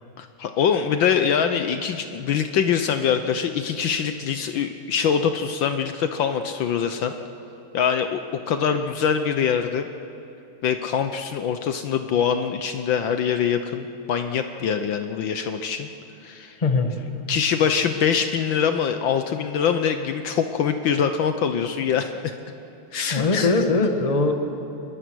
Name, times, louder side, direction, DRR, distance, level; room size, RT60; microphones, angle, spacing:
voice 1, 0.2-7.1 7.7-8.2 8.5-9.9 10.6-15.9 16.2-16.6 17.3-22.3 22.9-23.7, left 7 dB, 65° left, 8 dB, 1.5 m, -24 dB
voice 2, 16.6-17.0 23.1-24.3, left 3 dB, 20° left, 5 dB, 1.3 m, -21 dB
27.0 x 21.5 x 6.3 m, 2.8 s
omnidirectional pair, 2.4 m